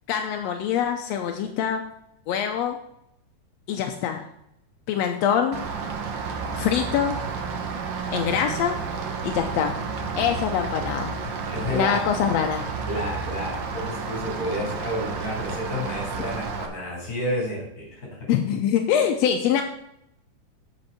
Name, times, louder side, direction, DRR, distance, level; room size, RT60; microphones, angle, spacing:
voice 1, 0.1-1.8 2.3-2.8 3.7-4.3 4.9-5.6 6.5-7.2 8.1-8.8 9.2-9.7 10.2-11.1 11.7-12.7 18.3-19.6, left 8 dB, 75° left, 4 dB, 1.6 m, -24 dB
Rain, 5.5-16.7, right 5 dB, 80° right, 1.0 m, -31 dB
voice 2, 11.5-12.0 12.8-18.1, equal, 25° left, -2 dB, 4.4 m, -30 dB
8.0 x 6.4 x 5.7 m, 0.80 s
omnidirectional pair, 3.7 m